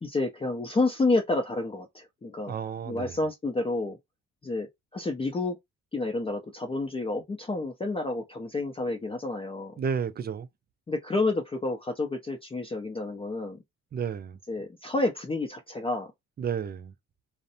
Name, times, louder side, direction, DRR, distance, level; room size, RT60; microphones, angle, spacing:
voice 1, 0.0-2.6 2.9-4.0 4.4-5.6 5.9-9.8 10.9-13.6 14.5-16.1, left 2 dB, 20° left, 0.5 m, -29 dB
voice 2, 2.5-3.2 9.8-10.5 13.9-14.4 16.4-16.9, right 7 dB, 35° right, 0.4 m, -32 dB
2.6 x 2.1 x 2.7 m
cardioid pair, 90°, 30 cm